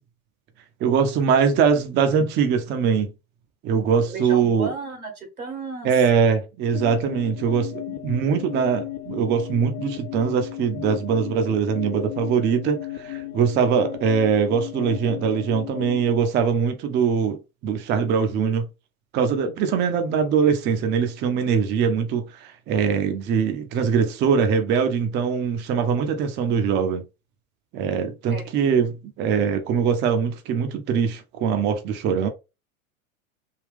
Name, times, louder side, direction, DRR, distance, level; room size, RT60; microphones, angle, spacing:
voice 1, 0.8-3.1 3.6-4.7 5.8-18.7 19.1-27.0 27.7-32.3, right 6 dB, 25° right, 0.5 m, -22 dB
voice 2, 3.8-5.9 28.3-28.4, right 3 dB, 85° right, 1.8 m, -34 dB
sound 1, 6.7-16.1, left 14 dB, 60° left, 0.8 m, -35 dB
3.6 x 2.3 x 3.4 m
hypercardioid pair, 90°, 42 cm